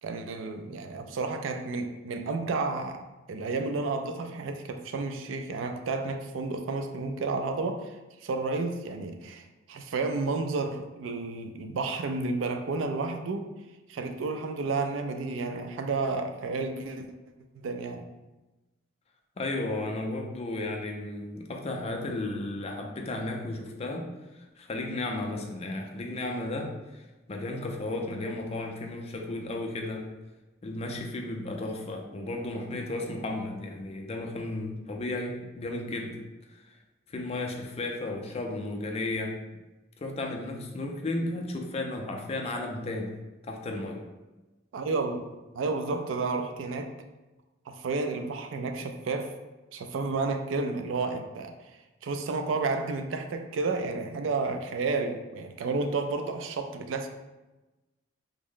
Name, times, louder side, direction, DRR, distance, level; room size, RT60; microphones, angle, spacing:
voice 1, 0.0-13.5 13.9-17.1 17.6-18.1 44.7-46.9 47.7-49.4 49.7-51.5 52.0-57.1, right 3 dB, 80° right, 6 dB, 0.4 m, -31 dB
voice 2, 19.4-27.0 27.3-30.1 30.6-36.2 36.5-36.8 37.1-39.4 40.0-43.1 43.4-44.1, left 2 dB, 30° left, 2 dB, 0.4 m, -34 dB
3.5 x 2.0 x 3.7 m, 1.1 s
head